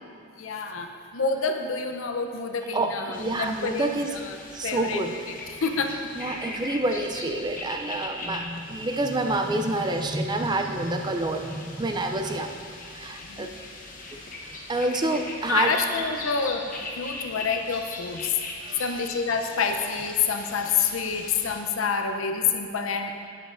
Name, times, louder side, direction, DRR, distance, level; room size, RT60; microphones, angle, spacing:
voice 1, 0.4-3.9 4.3-4.4 4.6-5.0 5.5-5.9 13.2-13.5 15.5-18.4 18.8-23.1, left 5 dB, 75° left, 5 dB, 0.7 m, -27 dB
voice 2, 2.7-4.1 4.5-5.2 6.2-12.6 12.9-13.5 14.7-15.8 18.6-19.0, right 2 dB, 20° right, 5 dB, 0.4 m, -28 dB
sound 1, 3.1-21.6, left 3 dB, 40° left, 0.9 m, -40 dB
11.0 x 9.2 x 2.6 m, 2.4 s
head